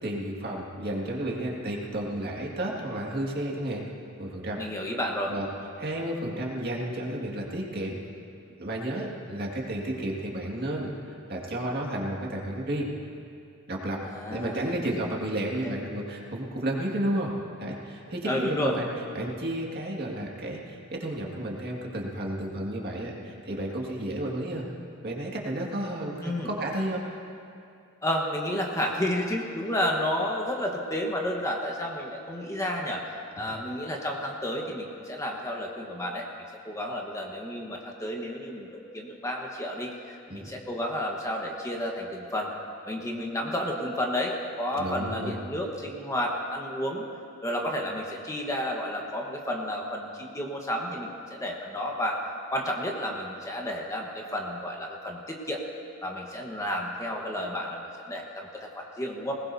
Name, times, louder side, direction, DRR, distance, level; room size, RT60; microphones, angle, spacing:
voice 1, 0.0-3.8 4.2-4.6 5.3-5.5 5.8-8.0 8.6-12.9 13.7-14.0 14.3-17.3 17.6-18.9 19.1-24.7 25.0-27.0 33.4-33.6 40.3-40.5 44.7-45.4, right 1 dB, 50° right, -2 dB, 2.0 m, -32 dB
voice 2, 4.6-5.3 14.1-14.7 15.6-15.7 18.2-18.7 26.2-26.5 28.0-33.0 33.4-36.2 36.6-42.5 42.8-47.0 47.4-52.2 52.5-55.6 56.0-59.3, left 1 dB, 15° left, 0 dB, 1.2 m, -31 dB
21.0 x 19.5 x 2.7 m, 2.5 s
head